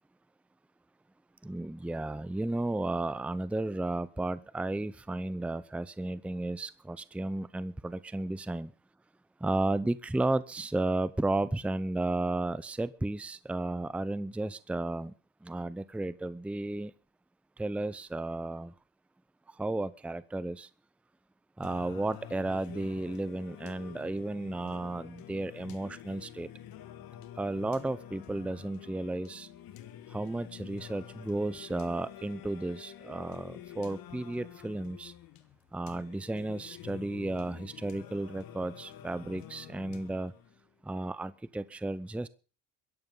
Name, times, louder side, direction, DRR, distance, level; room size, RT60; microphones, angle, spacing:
voice 1, 1.4-8.7 9.4-15.1 15.4-16.9 17.6-18.7 19.5-20.7 21.6-26.5 27.4-29.5 30.1-35.1 35.7-40.3 40.8-42.3, right 2 dB, 5° right, 0.6 m, -33 dB
Singing, 21.6-40.6, left 11 dB, 65° left, 1.6 m, -48 dB
22.5 x 11.0 x 3.9 m
supercardioid pair, 75°, 38 cm